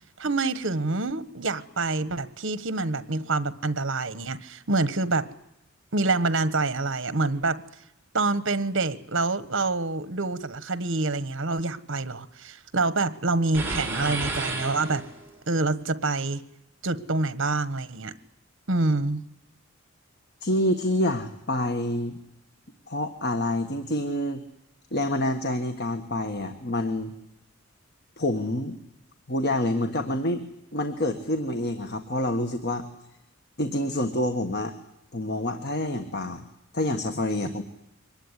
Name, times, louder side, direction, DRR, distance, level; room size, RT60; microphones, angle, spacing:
voice 1, 0.2-5.3 5.9-7.6 8.1-15.0 15.5-16.4 16.8-18.1 18.7-19.2, right 3 dB, 65° right, 14 dB, 1.4 m, -26 dB
sound 1, 13.5-15.4, right 2 dB, 10° right, 5.1 m, -31 dB
voice 2, 20.4-22.2 22.9-24.4 24.9-27.1 28.2-28.8 29.3-30.4 30.7-32.9 33.6-34.7 35.1-36.5 36.7-37.6, left 1 dB, 55° left, 7 dB, 1.6 m, -27 dB
24.0 x 19.5 x 9.8 m, 0.83 s
head